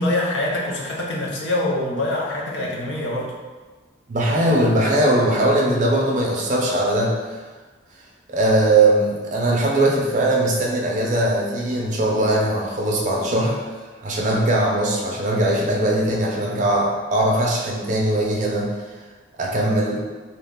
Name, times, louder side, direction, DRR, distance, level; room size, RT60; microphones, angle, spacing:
voice 1, 0.0-3.3, left 1 dB, 65° left, -2 dB, 0.5 m, -24 dB
voice 2, 4.1-7.2 8.3-13.6 14.0-18.7 19.4-20.0, right 1 dB, 40° right, -2 dB, 0.4 m, -20 dB
2.4 x 2.1 x 3.5 m, 1.3 s
head